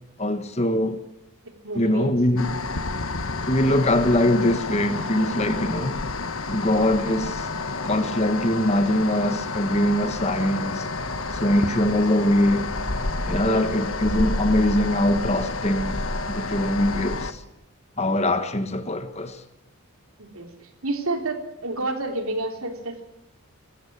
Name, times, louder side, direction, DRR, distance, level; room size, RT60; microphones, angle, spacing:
voice 1, 0.2-1.0 1.7-2.6 3.5-6.0 6.5-7.5 7.8-10.8 11.3-12.7 13.3-16.0 16.3-17.4 18.0-19.4, left 1 dB, 30° left, 1.5 m, -22 dB
voice 2, 1.5-2.1 13.4-13.7 20.2-20.5 20.8-23.0, right 2 dB, 75° right, 3.5 m, -29 dB
sound 1, 2.4-17.3, left 3 dB, 70° left, 1.4 m, -29 dB
21.5 x 15.0 x 8.8 m
head